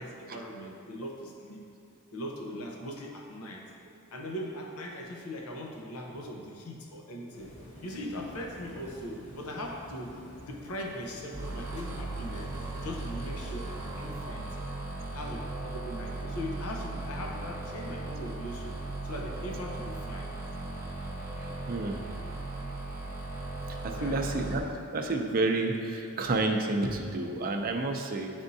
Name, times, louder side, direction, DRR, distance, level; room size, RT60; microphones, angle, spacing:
voice 1, 0.0-1.7 2.1-3.7 4.1-7.5 7.8-10.2 10.5-14.6 15.1-20.3 23.9-24.2, equal, 80° left, 0 dB, 0.7 m, -40 dB
sound 1, 7.3-14.3, left 1 dB, 60° left, 1.3 m, -49 dB
sound 2, 11.3-24.6, right 2 dB, 15° right, 0.9 m, -37 dB
voice 2, 21.7-22.0 23.7-24.7 24.9-28.3, right 2 dB, 40° right, 3 dB, 0.5 m, -30 dB
10.5 x 3.5 x 2.7 m, 2.6 s
head